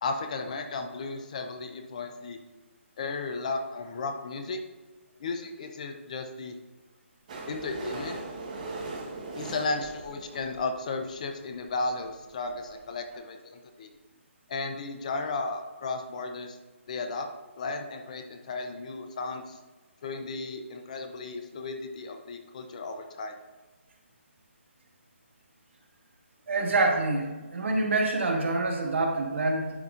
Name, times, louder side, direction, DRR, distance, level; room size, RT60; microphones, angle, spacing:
voice 1, 0.0-2.4 3.0-4.6 5.2-6.6 7.5-8.2 9.3-13.9 14.5-16.6 16.9-17.3 17.6-19.6 20.0-23.4, left 3 dB, 35° left, 6 dB, 0.6 m, -34 dB
sound 1, 7.3-11.2 11.8-11.9 12.1-12.2 12.4-12.5 12.8-12.9, right 3 dB, 35° right, 1.1 m, -39 dB
voice 2, 26.5-29.7, right 2 dB, 70° right, 1 dB, 1.5 m, -26 dB
10.5 x 5.3 x 2.5 m, 1.3 s
hypercardioid pair, 170°, 7 cm